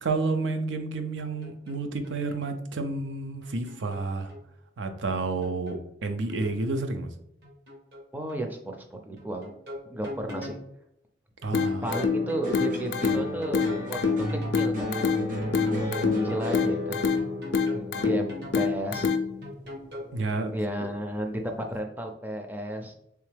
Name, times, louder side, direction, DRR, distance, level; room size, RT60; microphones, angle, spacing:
voice 1, 0.0-4.3 4.8-7.1 11.4-11.8 17.9-18.0 20.1-20.5, right 3 dB, 85° right, 8 dB, 0.5 m, -30 dB
sound 1, 1.2-2.6 3.4-4.4 5.2-6.6 7.4-8.0 8.3-8.4 9.2-10.6 11.4-12.5 13.2-14.6 15.4-16.5 17.2-18.6 19.4-20.3, left 1 dB, 65° right, 1.2 m, -41 dB
voice 2, 8.1-9.5 9.9-10.6 11.8-14.0 14.3-15.0 16.2-17.0 17.7-19.1 20.5-22.9, right 1 dB, 10° right, 3 dB, 0.4 m, -33 dB
sound 2, 11.5-19.5, left 5 dB, 60° left, 0.4 m, -28 dB
sound 3, 11.9-20.3 20.6-21.3, left 1 dB, 45° right, 0.8 m, -34 dB
3.5 x 3.3 x 3.3 m, 0.78 s
head